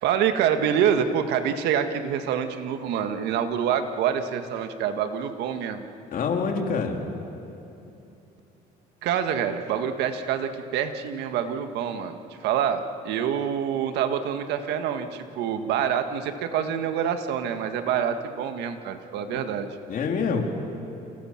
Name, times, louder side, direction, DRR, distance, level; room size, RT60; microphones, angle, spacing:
voice 1, 0.0-5.9 9.0-19.7, right 8 dB, 85° right, 8 dB, 1.7 m, -26 dB
voice 2, 6.1-7.0 19.3-19.4 19.9-20.4, left 5 dB, 55° left, 2 dB, 3.4 m, -26 dB
29.5 x 27.5 x 5.9 m, 2.9 s
cardioid pair, 110°, 17 cm